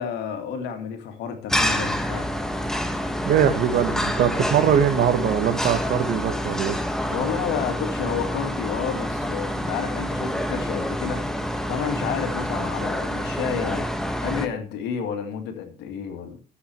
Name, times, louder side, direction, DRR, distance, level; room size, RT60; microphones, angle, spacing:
voice 1, 0.0-2.3 7.1-11.4 11.7-16.4, left 7 dB, 85° left, 2.2 m, -30 dB
sound 1, 1.5-14.5, equal, 5° left, 1.6 m, -27 dB
voice 2, 3.2-6.8, right 8 dB, 65° right, 1.7 m, -21 dB
12.5 x 8.0 x 4.7 m
cardioid pair, 110°, 17 cm